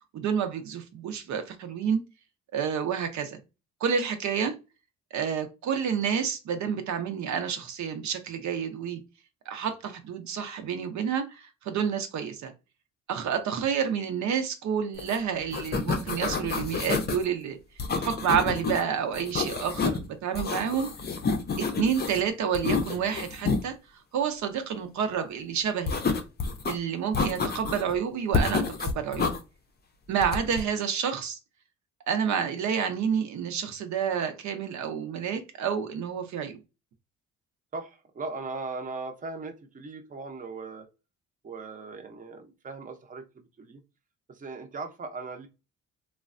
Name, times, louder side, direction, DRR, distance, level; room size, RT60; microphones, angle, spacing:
voice 1, 0.1-2.0 2.5-3.4 3.8-4.5 5.1-9.0 9.5-12.5 13.1-17.6 18.0-20.9 21.6-23.7 24.1-26.0 26.7-29.3 30.1-31.4 32.1-36.6, right 7 dB, 70° right, 0.7 m, -29 dB
sound 1, 15.0-15.2 15.4-17.2 17.8-18.8 19.1-20.0 20.3-22.2 22.5-23.6 25.9-26.7 27.1-27.9 28.3-29.4 30.2-30.6, left 4 dB, 35° left, 0.5 m, -29 dB
voice 2, 37.7-40.9 41.4-43.8 44.3-45.5, right 3 dB, 25° right, 0.6 m, -38 dB
3.1 x 2.1 x 2.5 m
cardioid pair, 90°, 30 cm